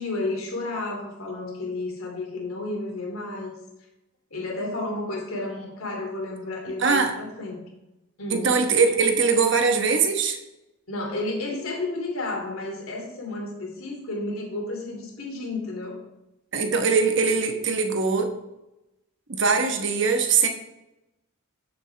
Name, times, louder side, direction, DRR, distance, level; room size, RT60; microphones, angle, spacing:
voice 1, 0.0-3.5 4.3-7.6 8.2-8.6 10.9-16.0, left 2 dB, 85° left, 0 dB, 2.7 m, -32 dB
voice 2, 6.8-7.1 8.3-10.4 16.5-18.3 19.3-20.5, right 5 dB, 60° right, 5 dB, 1.2 m, -21 dB
12.5 x 7.1 x 3.4 m, 0.93 s
head